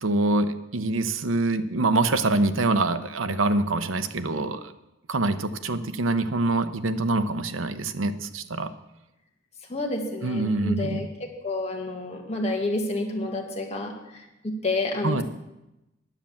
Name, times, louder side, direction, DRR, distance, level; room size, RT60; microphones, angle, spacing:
voice 1, 0.0-4.7 5.1-8.7 10.2-11.1 15.0-15.2, right 2 dB, 85° right, 10 dB, 0.8 m, -25 dB
voice 2, 9.7-15.2, left 2 dB, 35° left, 1 dB, 1.9 m, -29 dB
10.0 x 8.7 x 7.2 m, 0.94 s
head